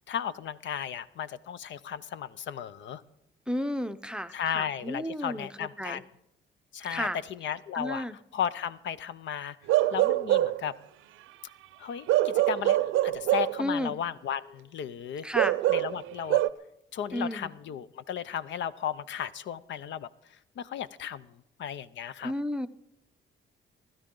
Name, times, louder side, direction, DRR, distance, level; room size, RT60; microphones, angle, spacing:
voice 1, 0.1-3.0 4.3-6.0 6.7-8.1 8.3-9.6 9.9-10.7 11.8-15.3 15.7-16.4 16.9-20.1 20.6-21.3 21.6-22.3, left 9 dB, 65° left, 16 dB, 0.6 m, -35 dB
voice 2, 3.5-6.0 6.9-7.2 7.7-8.2 13.6-13.9 15.2-15.6 17.1-17.5 22.2-22.7, equal, 5° right, 10 dB, 0.7 m, -32 dB
Bark / Livestock farm animals working animals, 9.7-10.7 12.1-13.6 15.4-16.5, right 15 dB, 90° right, 0.6 m, -24 dB
24.5 x 12.5 x 3.8 m, 0.80 s
cardioid pair, 90°, 20 cm